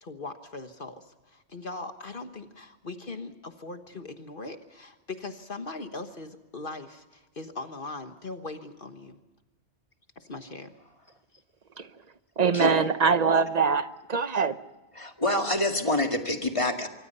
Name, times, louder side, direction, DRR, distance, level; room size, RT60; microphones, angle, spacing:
voice 1, 0.0-9.2 10.2-10.7, left 3 dB, 50° left, 1.5 m, -40 dB
voice 2, 12.4-14.6, right 5 dB, 40° right, 1.0 m, -23 dB
voice 3, 15.0-16.9, left 1 dB, 30° left, 2.1 m, -26 dB
25.5 x 24.0 x 5.5 m
omnidirectional pair, 1.1 m